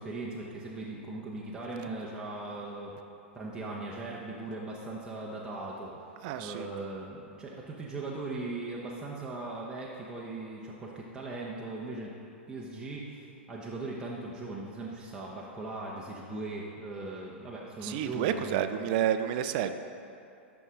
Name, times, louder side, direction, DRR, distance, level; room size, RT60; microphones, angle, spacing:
voice 1, 0.0-2.9 3.3-5.9 6.4-12.1 12.5-18.6, right 2 dB, 10° right, -5 dB, 1.0 m, -39 dB
voice 2, 6.2-6.7 17.8-19.7, right 10 dB, 50° right, 9 dB, 0.5 m, -30 dB
12.0 x 5.9 x 3.8 m, 2.6 s
hypercardioid pair, 110°, 7 cm